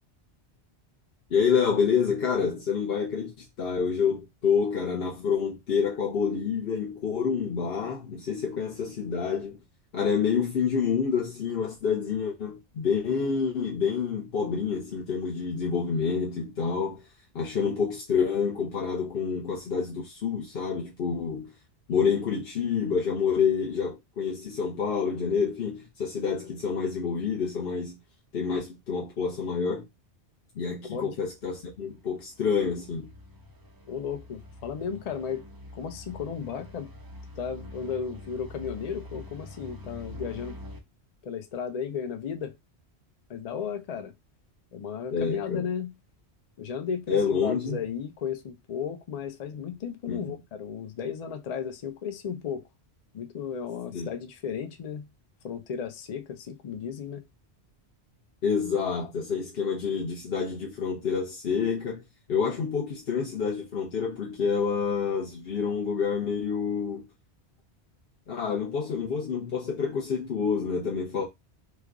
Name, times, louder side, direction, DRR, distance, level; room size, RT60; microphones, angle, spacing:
voice 1, 1.3-9.6 9.9-17.0 17.3-21.5 21.9-28.0 28.3-29.8 30.6-33.1 45.1-45.6 47.1-47.8 50.1-50.4 53.9-54.1 58.4-62.0 62.3-67.1 68.3-71.2, left 6 dB, 65° left, 1.0 m, -28 dB
voice 2, 30.8-31.1 33.9-35.4 35.7-36.9 37.4-40.6 41.2-42.5 43.3-44.1 44.7-45.9 46.6-52.6 53.1-55.1 55.4-57.2, left 7 dB, 45° left, 0.5 m, -34 dB
sound 1, 31.3-40.8, left 2 dB, 30° right, 0.4 m, -45 dB
3.2 x 2.3 x 3.6 m
omnidirectional pair, 1.1 m